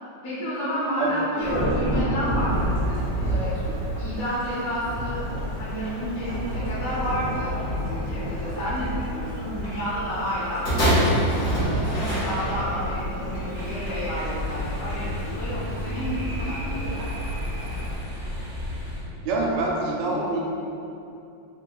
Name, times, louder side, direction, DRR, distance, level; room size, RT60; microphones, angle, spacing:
voice 1, 0.2-3.7 4.0-5.2 5.6-17.0, equal, 70° left, -11 dB, 1.5 m, -30 dB
Thunderstorm / Rain, 1.4-17.9, equal, 60° right, 0.7 m, -30 dB
sound 1, 10.6-12.9 13.7-13.8, equal, 55° left, 1.3 m, -23 dB
sound 2, 13.5-19.0, left 1 dB, 10° right, 0.6 m, -33 dB
voice 2, 19.2-20.4, right 2 dB, 80° right, -3 dB, 1.3 m, -25 dB
3.5 x 3.3 x 2.2 m, 2.7 s
omnidirectional pair, 2.0 m